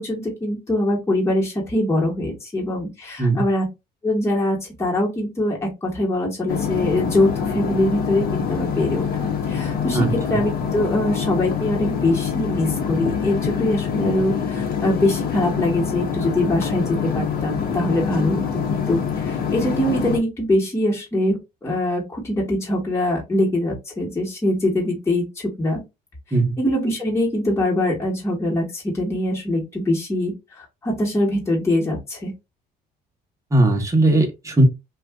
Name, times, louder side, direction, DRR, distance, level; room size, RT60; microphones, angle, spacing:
voice 1, 0.0-3.7 4.0-16.8 17.1-25.2 25.6-25.8 26.6-32.3, left 1 dB, 15° left, 1.3 m, -23 dB
sound 1, 6.5-20.2, left 6 dB, 65° left, 1.0 m, -25 dB
voice 2, 33.5-34.6, right 2 dB, 20° right, 1.0 m, -18 dB
2.6 x 2.4 x 3.5 m
cardioid pair, 110°, 17 cm